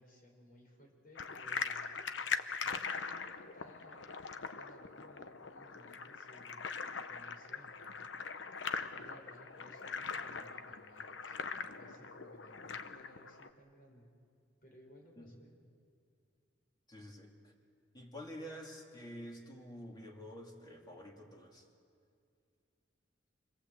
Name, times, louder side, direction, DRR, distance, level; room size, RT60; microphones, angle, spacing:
voice 1, 0.0-8.1 8.9-14.1 14.6-15.6, equal, 50° left, 1 dB, 5.4 m, -60 dB
sound 1, 1.2-13.5, left 5 dB, 75° left, 1.0 m, -41 dB
voice 2, 16.9-17.5 17.9-21.6, equal, 20° left, 0 dB, 3.1 m, -49 dB
27.5 x 21.0 x 8.1 m, 2.3 s
head